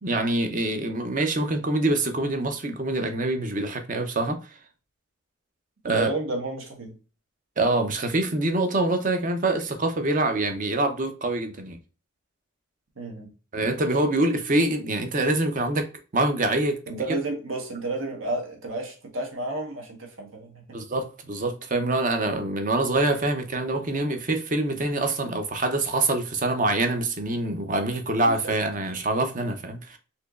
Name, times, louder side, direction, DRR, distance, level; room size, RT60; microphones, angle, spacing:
voice 1, 0.0-4.4 5.8-6.1 7.6-11.8 13.5-15.9 16.1-17.0 20.7-30.0, right 2 dB, 40° right, 0.6 m, -25 dB
voice 2, 5.9-7.0 13.0-13.3 16.9-20.6 28.2-28.5 28.9-29.0, right 2 dB, 70° right, 1.1 m, -31 dB
4.3 x 2.9 x 2.4 m
head